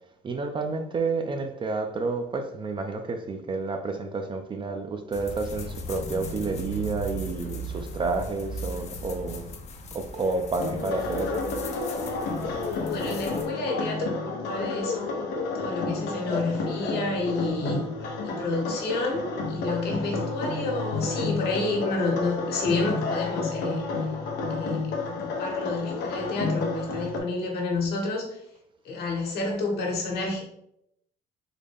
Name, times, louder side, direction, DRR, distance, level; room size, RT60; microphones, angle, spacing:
voice 1, 0.2-9.5 9.9-11.4, right 3 dB, 30° right, 6 dB, 0.4 m, -30 dB
sound 1, 5.1-13.5, right 1 dB, 40° left, 0.5 m, -37 dB
sound 2, 10.6-27.2, left 3 dB, 90° left, 0.7 m, -30 dB
voice 2, 12.9-14.1 14.5-15.0 15.5-17.8 18.2-23.8 24.5-28.3 28.8-30.4, left 3 dB, 70° left, 0 dB, 1.1 m, -29 dB
3.8 x 2.2 x 3.4 m, 0.77 s
cardioid pair, 110°, 17 cm